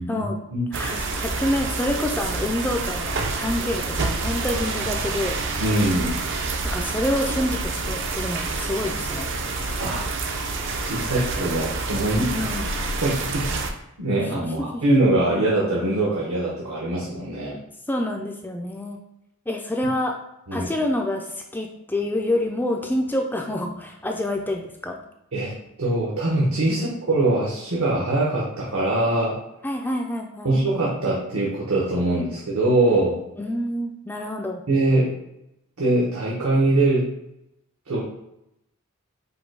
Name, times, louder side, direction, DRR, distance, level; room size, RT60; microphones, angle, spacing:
voice 1, 0.0-0.4 0.7-5.4 6.6-9.3 12.3-12.7 14.2-14.8 17.9-19.0 19.5-20.2 20.5-25.0 26.7-26.9 29.6-30.5 33.4-34.6, left 1 dB, 10° left, 2 dB, 0.3 m, -27 dB
sound 1, 0.7-13.7, right 3 dB, 55° right, 0.5 m, -28 dB
voice 2, 5.6-6.1 9.8-10.1 10.8-12.5 13.0-13.6 14.0-17.6 20.5-20.7 25.3-25.5 25.8-29.4 30.4-33.2 34.7-35.1 35.8-37.1 37.9-38.0, right 2 dB, 75° right, -5 dB, 1.1 m, -22 dB
5.1 x 2.2 x 4.6 m, 0.84 s
head